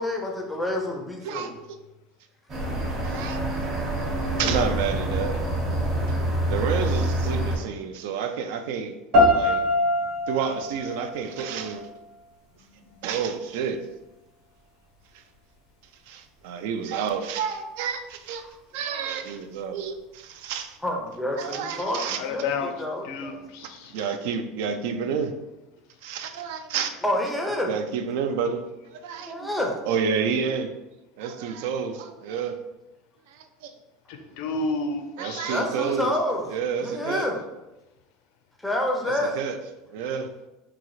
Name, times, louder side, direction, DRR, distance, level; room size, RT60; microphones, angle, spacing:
voice 1, 0.0-1.5 18.9-19.1 20.8-23.4 27.0-27.7 29.2-29.8 35.5-36.5 36.8-37.4 38.6-39.4, left 1 dB, 5° left, 1 dB, 0.5 m, -28 dB
sound 1, 2.5-7.6, right 1 dB, 30° right, 0.9 m, -26 dB
voice 2, 3.0-3.4 4.4-5.3 6.5-8.9 9.3-9.6 10.3-11.9 13.0-13.8 16.1-18.4 18.7-20.8 21.4-22.2 23.6-25.3 26.0-27.0 27.7-28.6 28.9-29.5 29.9-30.7 31.2-32.6 33.3-33.7 35.2-36.1 36.5-37.3 39.0-39.6 39.9-40.3, right 7 dB, 70° right, 8 dB, 0.3 m, -29 dB
sound 2, 9.1-12.1, left 1 dB, 50° right, 0.9 m, -23 dB
voice 3, 22.2-22.7 23.0-23.9 34.1-35.6, left 3 dB, 65° left, 7 dB, 0.4 m, -31 dB
3.8 x 2.4 x 3.1 m, 0.98 s
cardioid pair, 170°, 0 cm